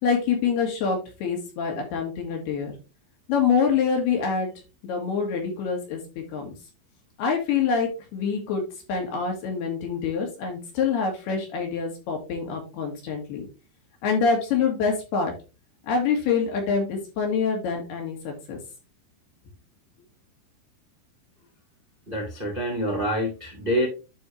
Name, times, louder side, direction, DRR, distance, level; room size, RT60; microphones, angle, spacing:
voice 1, 0.0-2.7 3.3-4.5 4.8-6.5 7.2-8.6 8.9-13.5 14.0-15.3 15.8-18.6, left 5 dB, 65° left, 2 dB, 3.5 m, -26 dB
voice 2, 22.1-23.9, equal, 80° right, 0 dB, 0.4 m, -26 dB
11.5 x 4.2 x 3.2 m, 0.30 s
omnidirectional pair, 5.5 m